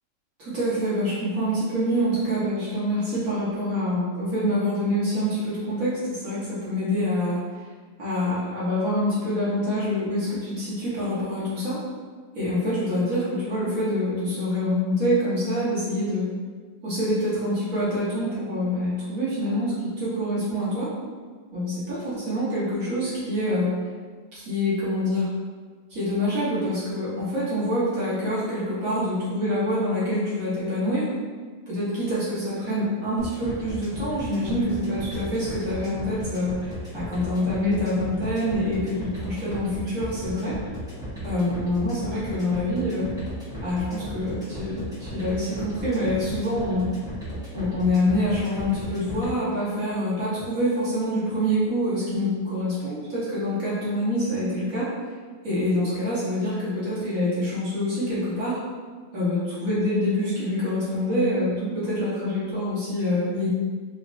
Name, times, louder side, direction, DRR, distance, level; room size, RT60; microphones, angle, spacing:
voice 1, 0.4-7.4 8.0-11.8 12.3-16.3 16.8-20.9 21.5-23.7 24.3-25.3 25.9-31.1 31.7-40.6 41.2-43.1 43.6-46.9 47.5-54.9 55.4-58.6 59.1-63.5, left 1 dB, 50° right, -10 dB, 1.6 m, -26 dB
sound 1, 33.2-49.3, equal, 5° right, 0.8 m, -36 dB
4.1 x 2.8 x 2.7 m, 1.5 s
omnidirectional pair, 2.0 m